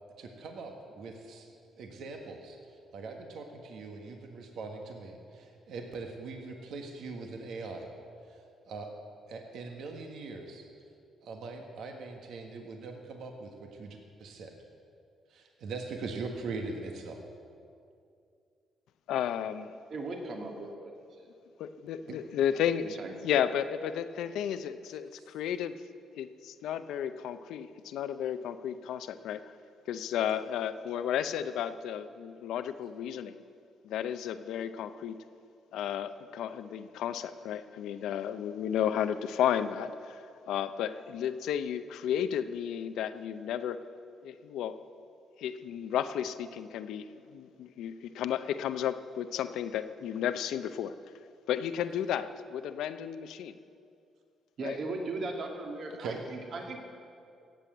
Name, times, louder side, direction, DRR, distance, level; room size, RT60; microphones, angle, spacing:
voice 1, 0.2-1.5 1.8-2.6 2.9-7.9 8.3-8.4 8.7-8.9 9.3-10.7 11.2-14.5 15.3-17.2 56.0-56.2, right 3 dB, 75° right, 3 dB, 1.5 m, -41 dB
voice 2, 19.1-19.7 21.6-23.0 23.2-25.8 26.1-29.5 29.9-33.4 33.8-35.2 35.7-40.2 40.5-43.8 44.2-44.8 45.4-50.9 51.5-53.6 54.6-54.8, left 9 dB, 85° left, 11 dB, 0.6 m, -33 dB
voice 3, 19.9-20.9 22.1-22.2 23.0-23.1 54.6-56.8, right 2 dB, 60° right, 1 dB, 2.3 m, -37 dB
17.0 x 7.8 x 7.9 m, 2.4 s
cardioid pair, 90°, 0 cm